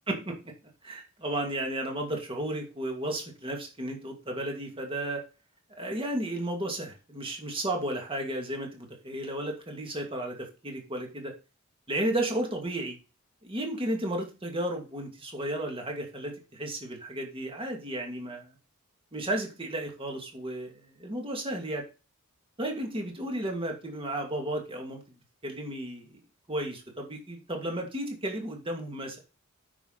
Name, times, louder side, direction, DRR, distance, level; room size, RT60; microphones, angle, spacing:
voice 1, 0.1-0.5 0.8-5.2 5.8-11.3 11.9-13.0 13.4-18.5 19.1-21.8 22.6-25.0 25.4-26.2 26.5-29.2, right 1 dB, 25° right, 2 dB, 2.3 m, -33 dB
9.0 x 6.2 x 4.0 m, 0.32 s
head